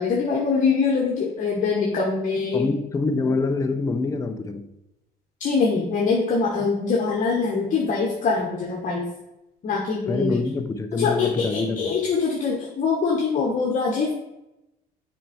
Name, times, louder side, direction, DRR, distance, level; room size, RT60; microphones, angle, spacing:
voice 1, 0.0-2.7 5.4-9.1 9.6-10.4 11.0-14.1, left 4 dB, 50° left, -2 dB, 1.2 m, -23 dB
voice 2, 2.5-4.7 10.1-12.0, left 3 dB, 20° left, 8 dB, 0.5 m, -25 dB
7.3 x 4.5 x 4.2 m, 0.92 s
cardioid pair, 110°, 17 cm